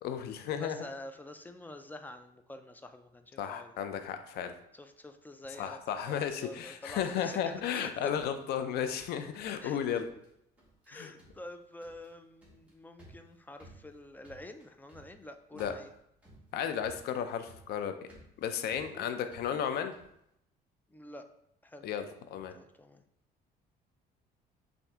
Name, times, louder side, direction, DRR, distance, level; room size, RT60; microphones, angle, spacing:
voice 1, 0.0-0.8 3.4-4.6 5.6-10.1 10.9-11.1 15.5-15.7 16.5-17.9 18.4-19.9 21.8-22.5, left 8 dB, 70° left, 8 dB, 0.5 m, -34 dB
voice 2, 0.5-3.7 4.7-5.8 6.1-8.1 9.6-10.1 10.9-15.9 18.9-19.2 20.9-21.3 21.6-21.9 22.5-23.0, left 1 dB, 10° left, 7 dB, 0.3 m, -47 dB
sound 1, 5.8-7.8 8.1-9.1 9.3-9.7 10.0-10.3 10.6-10.9 11.2-20.2, right 1 dB, 10° right, 1.6 m, -58 dB
5.7 x 2.7 x 3.5 m, 0.76 s
cardioid pair, 110°, 17 cm